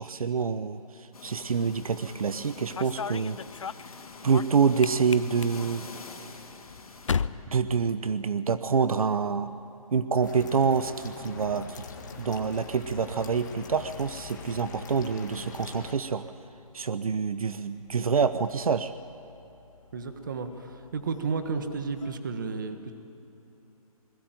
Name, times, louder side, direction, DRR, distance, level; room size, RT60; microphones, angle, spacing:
voice 1, 0.0-3.4 4.2-5.9 7.5-9.5 9.9-11.8 12.2-16.3 16.7-18.9, right 5 dB, 70° right, 12 dB, 0.9 m, -27 dB
sound 1, 1.1-7.2, left 4 dB, 70° left, 3.5 m, -46 dB
sound 2, 2.4-8.6 8.9-9.4 10.5-22.2, left 6 dB, 55° left, 0.7 m, -41 dB
sound 3, 10.2-15.9, left 5 dB, 30° left, 1.9 m, -43 dB
voice 2, 19.9-22.9, right 4 dB, 35° right, 8 dB, 1.5 m, -32 dB
27.5 x 20.5 x 9.1 m, 3.0 s
hypercardioid pair, 180°, 19 cm